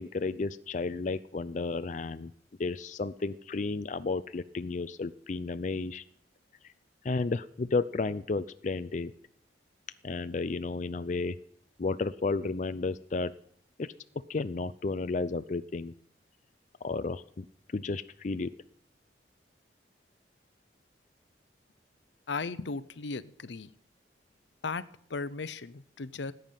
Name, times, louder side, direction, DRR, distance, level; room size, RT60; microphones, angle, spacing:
voice 1, 0.0-2.3 2.6-6.0 7.0-9.1 10.0-11.4 11.8-13.3 13.8-13.9 14.3-15.9 16.8-17.4 17.7-18.5, left 3 dB, 45° left, 13 dB, 0.4 m, -32 dB
voice 2, 22.3-23.7 24.6-24.8 25.1-26.3, left 4 dB, 80° left, 15 dB, 0.7 m, -36 dB
18.5 x 9.1 x 5.7 m, 0.65 s
head